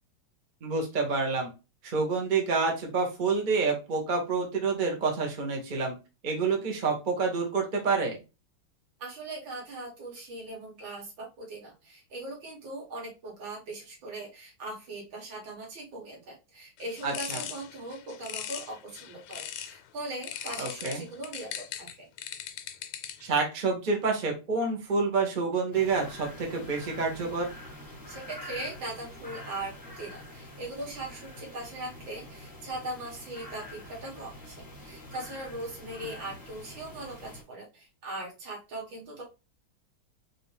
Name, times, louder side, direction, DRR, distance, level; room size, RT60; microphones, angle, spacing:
voice 1, 0.6-1.5 1.8-5.9 6.2-8.2 17.0-17.4 20.6-21.0 23.2-27.5, right 4 dB, 40° right, 1 dB, 0.7 m, -28 dB
voice 2, 9.0-22.1 28.1-39.2, right 2 dB, 65° right, -2 dB, 2.2 m, -40 dB
sound 1, 16.8-19.8 20.2-23.4, left 10 dB, 80° left, 1.4 m, -40 dB
sound 2, 25.7-37.4, left 1 dB, 15° left, 0.8 m, -46 dB
4.1 x 2.7 x 3.2 m, 0.28 s
omnidirectional pair, 2.3 m